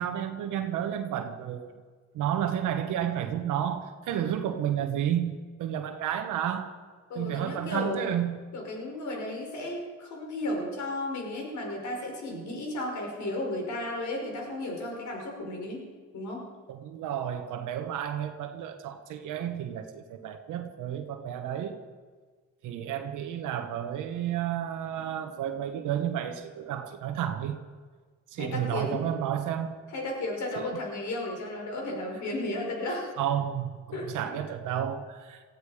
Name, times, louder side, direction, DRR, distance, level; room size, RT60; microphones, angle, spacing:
voice 1, 0.0-1.7 2.1-6.7 7.1-8.4 16.7-21.8 22.6-27.6 28.3-29.8 30.6-30.8 33.2-35.4, right 10 dB, 85° right, 5 dB, 1.3 m, -31 dB
voice 2, 7.1-8.1 8.5-15.8 16.1-16.4 28.4-29.0 29.9-33.1 33.9-34.3, left 1 dB, 70° left, 0 dB, 5.2 m, -34 dB
18.5 x 15.0 x 5.0 m, 1.5 s
cardioid pair, 90°, 30 cm